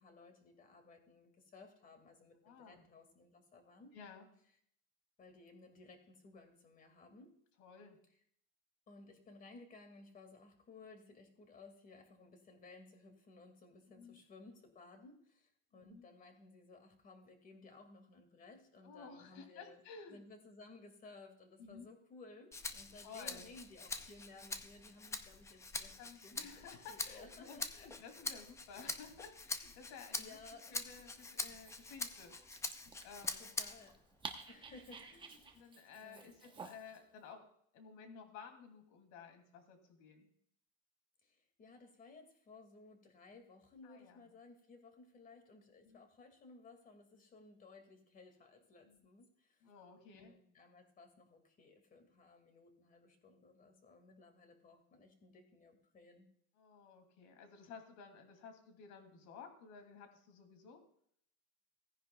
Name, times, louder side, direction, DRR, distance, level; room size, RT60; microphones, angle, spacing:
voice 1, 0.0-3.9 5.2-7.3 8.9-19.8 20.1-25.9 26.2-27.9 28.7-28.9 30.1-30.8 33.4-34.0 34.5-35.6 35.9-36.5 41.2-49.7 50.0-56.3, left 3 dB, 25° left, 6 dB, 2.1 m, -58 dB
voice 2, 2.4-2.9 3.9-4.3 7.6-8.0 13.9-14.2 15.7-16.1 18.8-20.2 21.6-21.9 23.0-23.5 26.0-30.4 30.7-33.5 35.5-37.5 37.7-40.3 43.8-44.3 45.8-46.0 48.8-49.1 49.6-50.3 56.6-60.8, left 5 dB, 55° left, 5 dB, 2.7 m, -54 dB
Rattle (instrument), 22.5-34.0 34.4-35.6, left 3 dB, 10° left, 0.4 m, -45 dB
Dog, 30.9-37.0, right 4 dB, 15° right, 0.9 m, -53 dB
17.5 x 10.0 x 2.3 m, 0.67 s
cardioid pair, 155°, 35 cm